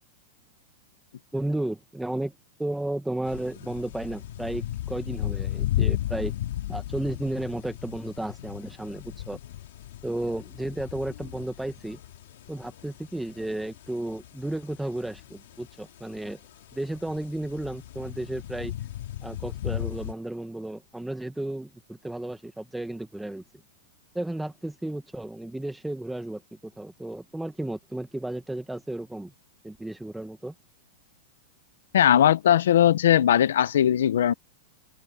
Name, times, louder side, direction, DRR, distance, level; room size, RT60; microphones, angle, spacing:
voice 1, 1.3-2.3 2.6-6.3 6.7-9.4 10.0-12.0 12.5-16.4 16.7-18.7 19.2-23.4 24.1-29.3 29.6-30.5, right 1 dB, 5° right, 1.3 m, -33 dB
sound 1, 3.2-20.1, left 12 dB, 60° left, 2.5 m, -35 dB
voice 2, 31.9-34.3, left 10 dB, 80° left, 0.7 m, -19 dB
supercardioid pair, 175°, 0 cm